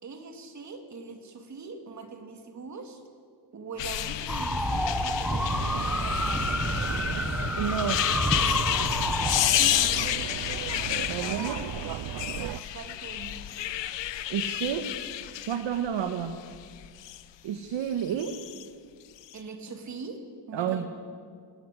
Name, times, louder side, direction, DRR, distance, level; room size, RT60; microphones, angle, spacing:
voice 1, 0.0-3.0 3.5-6.2 9.6-10.1 11.4-11.9 12.5-13.4 19.3-20.9, right 4 dB, 40° right, 5 dB, 3.3 m, -42 dB
sound 1, 3.8-17.2 18.1-18.6 19.2-19.3, left 12 dB, 70° left, 1.1 m, -30 dB
sound 2, 4.3-9.5, equal, ahead, 1.4 m, -29 dB
sound 3, 5.3-12.6, right 13 dB, 55° right, 0.6 m, -36 dB
voice 2, 7.6-8.0 11.1-11.5 14.3-14.9 15.5-16.4 17.4-18.3 20.5-20.8, right 9 dB, 75° right, 7 dB, 1.7 m, -30 dB
27.0 x 18.5 x 9.9 m, 2.1 s
cardioid pair, 165°, 45 cm